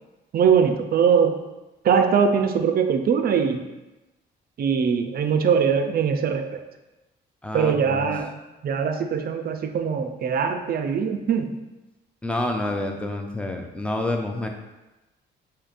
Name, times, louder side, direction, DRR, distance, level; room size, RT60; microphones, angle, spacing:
voice 1, 0.3-1.4 1.8-3.6 4.6-6.6 7.5-8.3 8.6-11.6, right 6 dB, 50° right, 6 dB, 0.4 m, -21 dB
voice 2, 7.4-8.1 12.2-14.5, left 1 dB, 5° left, 3 dB, 0.5 m, -28 dB
5.0 x 2.8 x 2.5 m, 1.1 s
cardioid pair, 90°, 20 cm